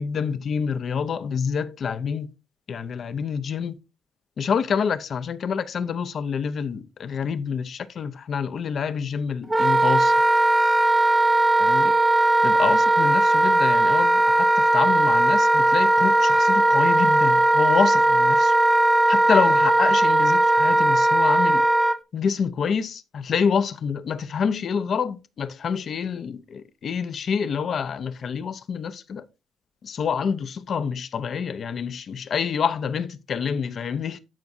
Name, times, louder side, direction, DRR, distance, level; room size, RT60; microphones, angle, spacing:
voice 1, 0.0-2.3 2.7-3.8 4.4-10.1 11.6-11.9 12.4-18.5 18.9-21.7 22.1-29.3 29.8-34.2, left 6 dB, 55° left, 0.6 m, -27 dB
Wind instrument woodwind instrument, 9.5-22.0, right 1 dB, 15° right, 0.6 m, -18 dB
12.0 x 4.7 x 2.6 m
cardioid pair, 90°, 0 cm